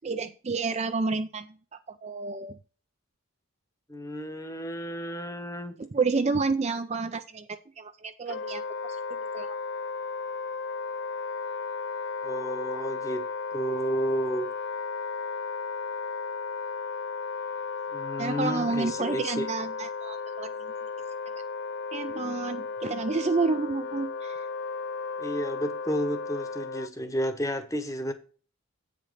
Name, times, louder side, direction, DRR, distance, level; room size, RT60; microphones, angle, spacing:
voice 1, 0.0-1.5 2.0-2.6 5.8-8.6 9.1-9.5 18.2-20.5 21.9-24.4, right 4 dB, 30° right, 0.4 m, -30 dB
voice 2, 3.9-5.8 12.2-13.3 13.5-14.5 17.9-19.5 25.2-28.1, equal, 15° left, 0.9 m, -31 dB
Wind instrument woodwind instrument, 8.3-26.9, left 4 dB, 50° left, 0.4 m, -34 dB
8.6 x 5.1 x 5.6 m
head